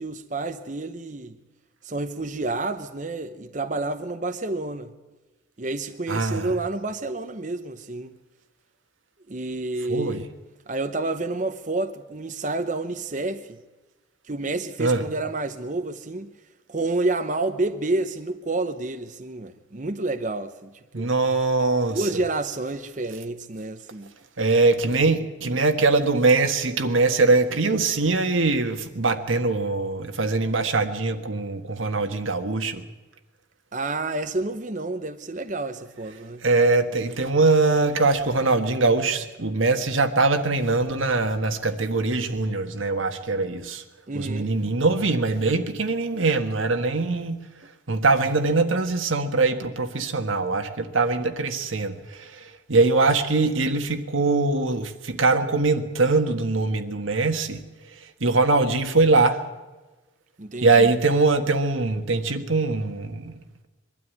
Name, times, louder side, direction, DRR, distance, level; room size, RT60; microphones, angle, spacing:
voice 1, 0.0-1.4 1.8-4.9 5.6-8.1 9.3-10.3 10.7-13.6 14.3-16.3 16.7-21.1 21.9-24.1 33.7-36.4 44.1-44.5 60.4-60.9, right 2 dB, 40° right, 0.8 m, -29 dB
voice 2, 6.1-6.5 9.9-10.2 14.8-15.0 20.9-22.0 24.4-32.8 36.4-43.8 44.1-47.4 47.9-52.4 52.7-57.6 58.2-59.4 60.6-63.4, right 3 dB, 90° right, 1.6 m, -22 dB
23.0 x 12.5 x 9.5 m
head